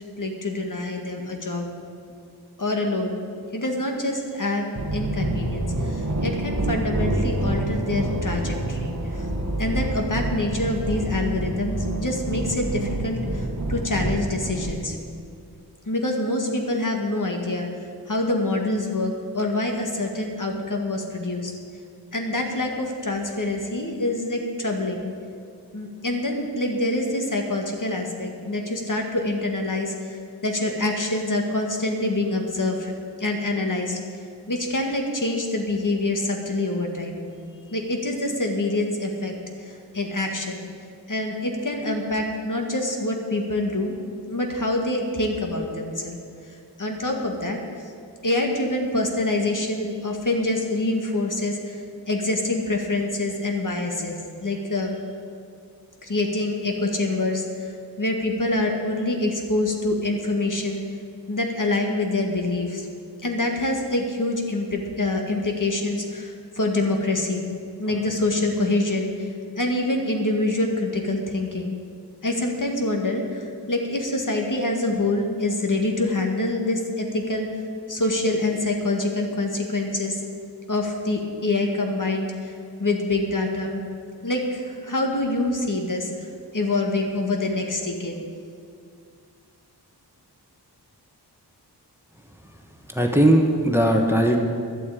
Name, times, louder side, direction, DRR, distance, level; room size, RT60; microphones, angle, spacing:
voice 1, 0.2-1.7 2.6-3.2 3.5-9.3 9.6-13.2 13.7-15.0 15.9-17.7 18.1-21.5 22.1-25.1 25.7-30.2 30.4-32.9 33.2-34.0 34.5-37.2 37.7-39.3 39.6-40.6 41.1-43.9 44.3-46.2 46.8-47.6 48.2-51.8 52.1-55.0 56.0-57.4 58.0-60.8 61.3-62.9 63.2-67.5 67.8-69.1 69.6-71.8 72.2-77.5 77.9-80.2 80.7-82.5 82.8-83.8 84.2-86.1 86.5-88.1, left 2 dB, 50° left, 2 dB, 1.8 m, -25 dB
sound 1, 4.7-14.7, right 1 dB, 40° right, 1.2 m, -27 dB
voice 2, 92.9-94.4, right 1 dB, 5° right, 2 dB, 1.3 m, -18 dB
12.0 x 8.4 x 8.4 m, 2.3 s
wide cardioid pair, 70°, 40 cm